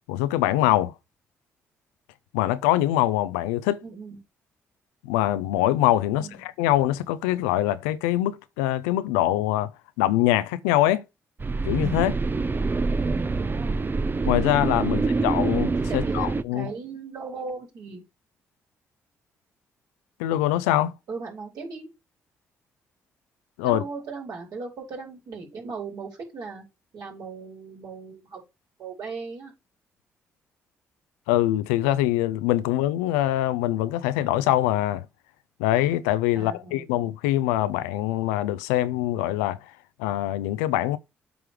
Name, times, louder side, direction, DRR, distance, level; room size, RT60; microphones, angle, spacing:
voice 1, 0.1-0.9 2.3-3.8 5.0-9.7 10.0-11.0 11.6-12.2 14.3-16.7 20.2-20.9 23.6-23.8 31.3-35.1 35.6-39.6 40.0-41.0, left 14 dB, 80° left, 0.5 m, -23 dB
voice 2, 3.8-4.2 6.2-6.4 13.2-13.8 14.9-15.2 15.9-18.0 21.1-21.9 23.6-26.6 26.9-28.4 28.8-29.5 36.4-37.0, right 4 dB, 60° right, 4.3 m, -37 dB
sound 1, 11.4-16.4, right 3 dB, 30° right, 0.7 m, -25 dB
7.8 x 4.6 x 5.0 m
hypercardioid pair, 45°, 7 cm